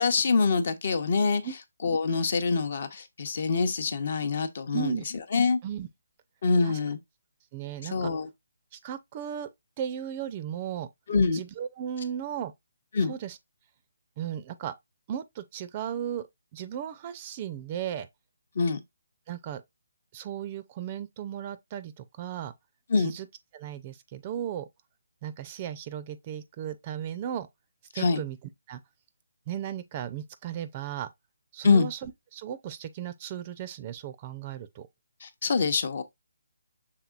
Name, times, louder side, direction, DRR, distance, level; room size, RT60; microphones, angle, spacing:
voice 1, 0.0-1.4 1.8-5.0 5.3-5.6 6.4-7.0 7.9-8.3 11.1-11.4 12.9-13.1 18.6-18.8 22.9-23.1 27.9-28.2 31.6-31.9 35.2-36.0, left 4 dB, 50° left, 0.8 m, -25 dB
voice 2, 4.7-5.1 5.6-5.9 6.6-6.8 7.5-8.1 8.7-9.5 9.8-10.9 11.3-12.5 13.1-13.4 14.2-14.7 15.1-16.3 16.5-18.1 19.3-19.6 20.1-22.5 23.0-23.3 23.5-24.7 25.2-27.5 27.9-28.4 28.7-28.8 29.5-31.1 31.5-34.9, right 9 dB, 25° right, 0.4 m, -35 dB
5.8 x 3.7 x 2.4 m
hypercardioid pair, 160°, 0 cm